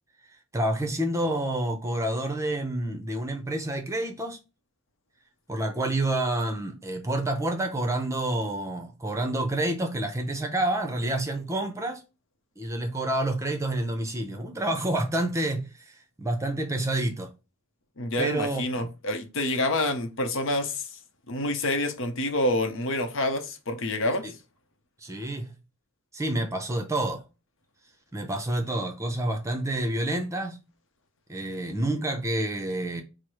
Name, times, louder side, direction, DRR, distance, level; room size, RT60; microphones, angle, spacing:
voice 1, 0.5-4.4 5.5-12.0 12.6-17.3 18.2-18.6 24.2-24.3 25.0-25.5 26.1-27.2 28.1-30.6 31.3-33.0, right 1 dB, 15° right, 0.7 m, -28 dB
voice 2, 18.0-21.0 21.3-24.2, left 1 dB, 65° left, 0.8 m, -27 dB
4.6 x 2.1 x 4.7 m
head